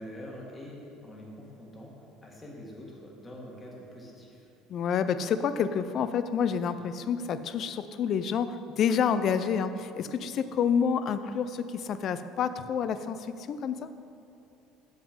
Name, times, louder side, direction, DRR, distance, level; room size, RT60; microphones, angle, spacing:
voice 1, 0.0-1.9 2.2-4.5, equal, 15° left, -2 dB, 1.7 m, -45 dB
voice 2, 4.7-13.2 13.5-13.9, left 7 dB, 50° left, 12 dB, 0.4 m, -28 dB
7.2 x 6.2 x 5.2 m, 2.7 s
supercardioid pair, 105°, 0 cm